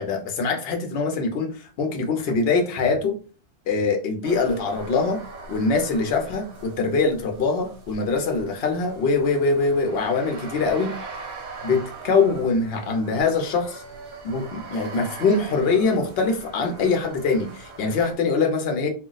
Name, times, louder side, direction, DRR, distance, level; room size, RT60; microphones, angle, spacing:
voice 1, 0.0-3.2 3.7-5.2 5.5-10.9 11.6-13.8 14.2-18.9, left 4 dB, 65° left, 3 dB, 0.8 m, -23 dB
sound 1, 4.2-18.1, right 3 dB, 45° right, 0.8 m, -41 dB
2.2 x 2.2 x 3.8 m, 0.37 s
omnidirectional pair, 1.2 m